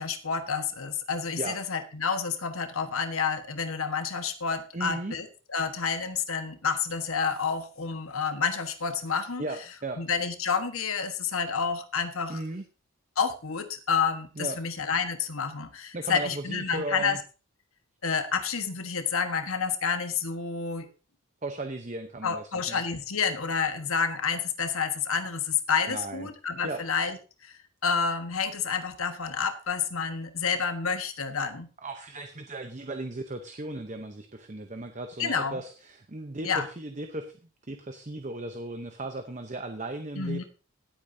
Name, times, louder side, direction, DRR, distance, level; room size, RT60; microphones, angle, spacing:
voice 1, 0.0-9.4 10.0-12.4 13.2-17.2 18.0-20.9 22.2-27.2 27.4-27.5 27.8-31.7 35.2-35.6 36.4-36.7 40.2-40.4, left 6 dB, 75° left, 8 dB, 1.3 m, -29 dB
voice 2, 4.7-5.1 9.4-10.0 12.3-12.6 14.4-14.6 15.9-17.2 21.4-22.8 25.9-26.3 26.6-26.8 31.8-37.4 37.7-40.4, right 2 dB, 35° right, 7 dB, 0.8 m, -36 dB
18.0 x 8.4 x 2.7 m, 0.34 s
head